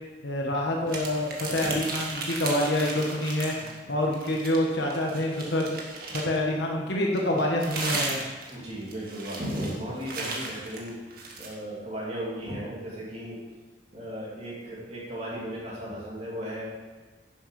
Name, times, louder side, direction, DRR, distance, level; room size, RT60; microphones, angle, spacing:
voice 1, 0.2-3.6 3.9-5.8 6.1-8.2, left 1 dB, 70° left, -1 dB, 1.4 m, -27 dB
sound 1, 0.9-3.8 4.1-6.4 7.2-11.5, right 3 dB, 55° right, 1.9 m, -35 dB
voice 2, 8.5-10.9 11.4-13.4 13.9-16.7, equal, 35° right, -6 dB, 2.8 m, -35 dB
11.0 x 7.8 x 5.4 m, 1.4 s
head